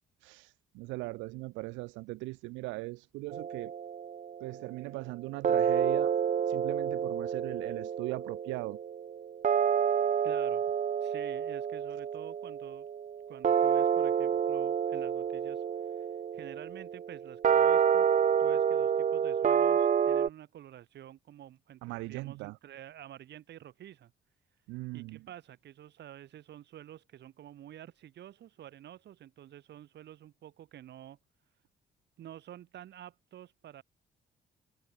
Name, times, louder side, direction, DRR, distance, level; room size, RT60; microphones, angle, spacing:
voice 1, 0.2-3.7 4.4-6.1 6.5-8.8 21.8-22.6 24.7-25.2, right 23 dB, 80° right, 0.5 m, -39 dB
sound 1, 3.3-4.7 5.4-20.3, right 8 dB, 40° right, 0.7 m, -29 dB
voice 2, 10.2-10.6 11.0-12.9 13.3-15.6 15.9-16.1 16.3-18.1 18.4-24.1 24.9-31.2 32.2-33.8, right 11 dB, 65° right, 1.7 m, -49 dB
hypercardioid pair, 55°, 19 cm